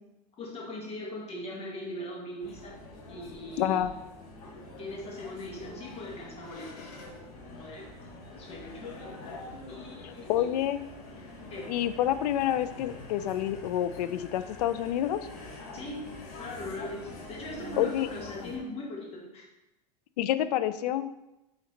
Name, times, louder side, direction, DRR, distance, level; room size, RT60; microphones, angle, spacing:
voice 1, 0.4-2.8 3.1-3.9 4.8-8.1 8.4-9.2 9.7-10.6 11.2-11.7 15.7-16.1 16.4-19.4, left 1 dB, 30° left, -1 dB, 1.7 m, -40 dB
sound 1, 2.4-18.6, left 2 dB, 65° left, 2.3 m, -45 dB
voice 2, 3.6-3.9 10.0-10.8 11.7-15.2 17.8-18.1 18.4-18.5 20.2-21.1, left 11 dB, 85° left, 13 dB, 0.5 m, -28 dB
8.8 x 4.1 x 3.3 m, 0.93 s
supercardioid pair, 135°, 20 cm